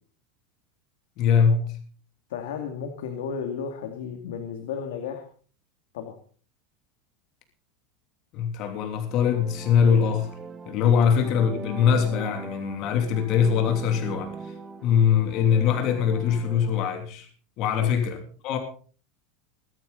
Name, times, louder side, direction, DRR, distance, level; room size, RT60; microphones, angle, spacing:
voice 1, 1.2-1.7 8.3-10.3 10.6-14.5 14.8-17.3 17.6-18.6, left 7 dB, 50° left, 3.0 m, -22 dB
voice 2, 2.3-5.2 5.9-6.2 10.9-11.1 17.8-17.9, left 7 dB, 85° left, 2.4 m, -33 dB
sound 1, 8.9-16.8, right 5 dB, 20° right, 1.4 m, -40 dB
22.5 x 9.5 x 4.1 m
supercardioid pair, 135°, 0 cm